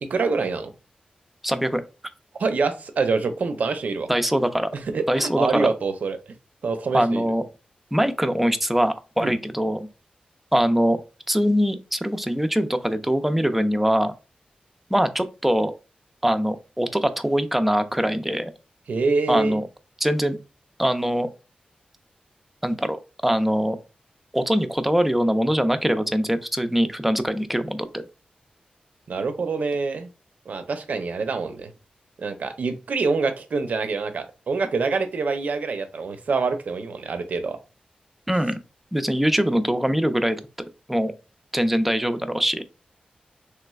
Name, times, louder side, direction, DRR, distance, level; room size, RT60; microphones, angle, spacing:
voice 1, 0.0-0.7 2.4-4.1 4.7-6.2 6.6-7.2 9.2-9.3 18.9-19.6 29.1-30.1 30.5-31.7 32.2-37.6, right 4 dB, 70° right, 0.5 m, -25 dB
voice 2, 1.4-1.8 4.1-4.7 5.1-5.7 6.9-7.4 7.9-9.9 10.5-11.0 11.3-14.1 14.9-15.7 16.2-18.5 19.3-19.6 20.0-20.4 20.8-21.3 22.6-23.8 24.3-27.9 38.3-38.6 38.9-40.4 40.9-41.1 41.5-42.6, equal, 5° right, 0.4 m, -22 dB
3.2 x 3.1 x 2.3 m
wide cardioid pair, 95°, 3 cm